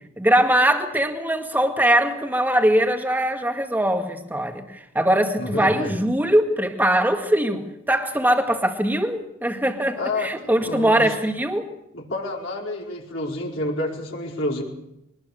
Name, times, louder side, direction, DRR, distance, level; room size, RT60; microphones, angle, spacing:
voice 1, 0.2-11.7, right 1 dB, 10° right, 4 dB, 2.1 m, -21 dB
voice 2, 5.4-5.9 10.0-11.1 11.9-14.6, left 1 dB, 65° left, -2 dB, 4.8 m, -29 dB
23.5 x 20.0 x 6.8 m, 0.86 s
head